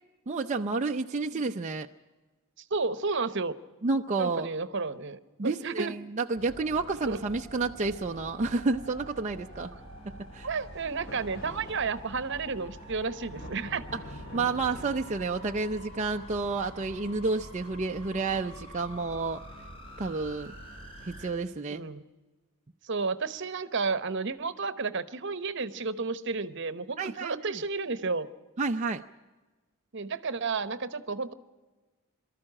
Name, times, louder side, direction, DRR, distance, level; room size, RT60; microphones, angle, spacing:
voice 1, 0.3-1.9 3.8-4.5 5.4-9.7 10.0-10.5 13.9-14.0 14.3-19.4 20.0-20.5 21.1-21.8 27.0-27.6 28.6-29.0, right 3 dB, 35° right, 3 dB, 0.5 m, -30 dB
voice 2, 2.7-3.5 4.2-5.9 7.1-7.2 10.4-13.8 21.7-22.0 22.8-28.3 29.9-31.3, right 4 dB, 60° right, 14 dB, 1.0 m, -32 dB
sound 1, 6.3-21.3, equal, 25° left, 5.2 m, -46 dB
sound 2, 10.5-18.8, equal, 55° left, 4.2 m, -48 dB
24.0 x 13.5 x 8.7 m, 1.2 s
head